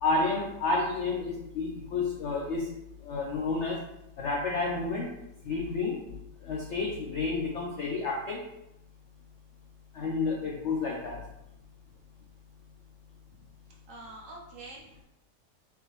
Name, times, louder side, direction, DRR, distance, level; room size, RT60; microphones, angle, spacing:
voice 1, 0.0-2.7 3.0-3.9 4.2-5.1 5.4-8.4 9.9-11.2, left 3 dB, 90° left, -1 dB, 0.6 m, -30 dB
voice 2, 13.9-15.0, right 2 dB, 60° right, -3 dB, 1.0 m, -46 dB
3.7 x 2.6 x 3.0 m, 0.85 s
omnidirectional pair, 1.8 m